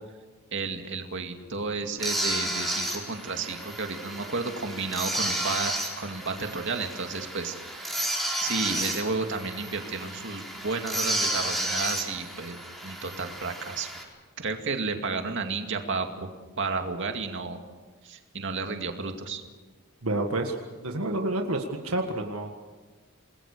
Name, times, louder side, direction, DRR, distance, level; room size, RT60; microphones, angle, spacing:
voice 1, 0.5-7.9 8.4-12.6 12.8-13.9 14.4-16.3 16.6-17.6 18.0-19.4, right 4 dB, 55° right, 5 dB, 2.4 m, -32 dB
sound 1, 2.0-14.0, right 1 dB, ahead, 4.2 m, -32 dB
voice 2, 20.0-22.5, right 2 dB, 80° right, 3 dB, 1.9 m, -29 dB
29.0 x 20.5 x 6.8 m, 1.3 s
head